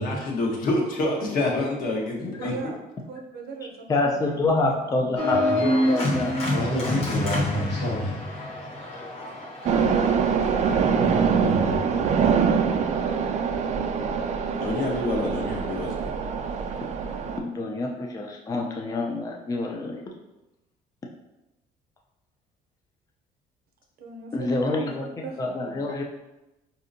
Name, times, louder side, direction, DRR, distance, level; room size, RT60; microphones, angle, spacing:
voice 1, 0.0-2.5 14.5-16.1, left 2 dB, 60° left, -1 dB, 0.9 m, -27 dB
voice 2, 2.4-2.8 3.1-5.6 24.0-25.8, right 3 dB, 65° right, 2 dB, 0.7 m, -39 dB
voice 3, 3.9-6.3 17.4-20.0 24.3-25.1 25.4-26.0, left 2 dB, 20° left, 1 dB, 0.4 m, -27 dB
Organ, 5.2-10.8, left 1 dB, 35° left, 1.0 m, -27 dB
voice 4, 5.3-6.1 6.5-8.3 10.8-12.7, equal, 85° left, -5 dB, 1.4 m, -31 dB
sound 1, 9.6-17.4, right 6 dB, 45° right, 0.4 m, -24 dB
4.2 x 2.7 x 2.6 m, 0.99 s
cardioid pair, 110°, 17 cm